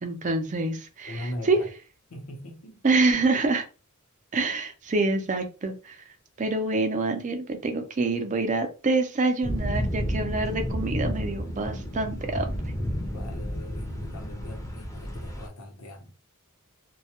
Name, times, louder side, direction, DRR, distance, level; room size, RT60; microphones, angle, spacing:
voice 1, 0.0-1.6 2.8-3.6 4.3-6.0 6.4-12.5, right 3 dB, 35° right, 0.5 m, -26 dB
voice 2, 1.1-1.7 2.1-2.8 13.1-16.1, left 1 dB, 80° left, 0.8 m, -40 dB
sound 1, 9.4-15.5, equal, 15° left, 0.5 m, -31 dB
2.2 x 2.0 x 2.8 m
head